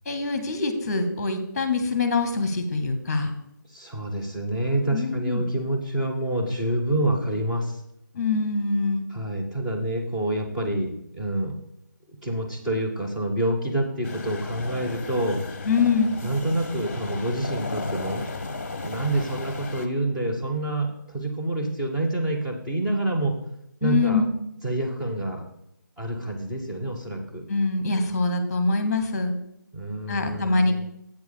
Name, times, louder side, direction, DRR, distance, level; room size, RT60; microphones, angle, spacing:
voice 1, 0.0-3.3 4.9-5.4 8.1-9.1 15.7-16.1 23.8-24.3 27.5-29.3 30.1-30.8, left 3 dB, 20° left, 7 dB, 1.1 m, -24 dB
voice 2, 3.7-7.8 9.1-11.6 12.1-15.4 16.2-18.3 18.8-23.4 23.8-24.2 24.6-25.4 26.0-27.4 29.7-30.8, right 1 dB, 5° right, -3 dB, 0.6 m, -27 dB
sound 1, 14.0-19.9, left 3 dB, 35° left, 0.8 m, -34 dB
8.0 x 4.6 x 6.8 m, 0.78 s
figure-of-eight pair, 155°, 11 cm